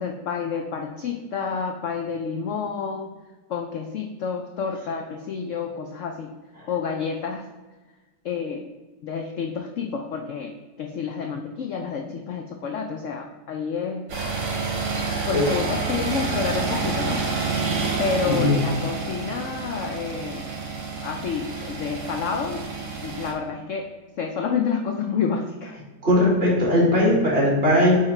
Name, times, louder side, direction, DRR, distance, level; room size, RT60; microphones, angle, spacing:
voice 1, 0.0-3.1 3.5-6.3 6.7-7.4 8.2-8.6 9.0-10.5 10.8-14.1 15.3-17.2 18.0-20.5 21.0-22.6 23.0-23.9 24.2-25.7, left 6 dB, 70° left, 3 dB, 0.7 m, -29 dB
sound 1, 14.1-23.3, right 4 dB, 70° right, 1.9 m, -28 dB
voice 2, 18.3-18.6 26.0-28.0, left 1 dB, 35° right, -6 dB, 2.6 m, -19 dB
8.4 x 3.2 x 4.3 m, 1.2 s
omnidirectional pair, 1.9 m